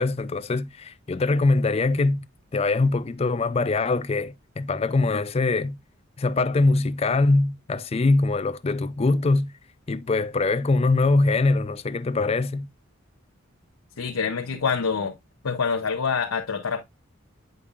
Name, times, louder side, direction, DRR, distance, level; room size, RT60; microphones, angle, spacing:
voice 1, 0.0-2.2 2.5-5.8 6.2-9.5 9.9-12.7, left 3 dB, 30° left, 0.4 m, -23 dB
voice 2, 14.0-15.2 15.4-16.8, left 5 dB, 90° left, 0.7 m, -26 dB
8.3 x 5.2 x 2.4 m
head